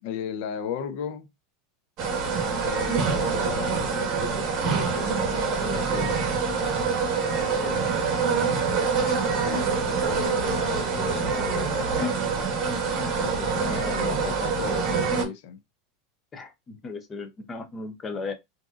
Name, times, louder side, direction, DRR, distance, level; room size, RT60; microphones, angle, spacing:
voice 1, 0.0-1.3 2.6-6.2 9.4-12.2 13.1-15.6, left 7 dB, 55° left, 0.6 m, -36 dB
sound 1, 2.0-15.2, right 5 dB, 40° right, 1.0 m, -25 dB
voice 2, 7.5-7.9 16.3-18.3, left 3 dB, 20° left, 0.6 m, -36 dB
3.7 x 2.6 x 2.4 m
supercardioid pair, 150°, 0 cm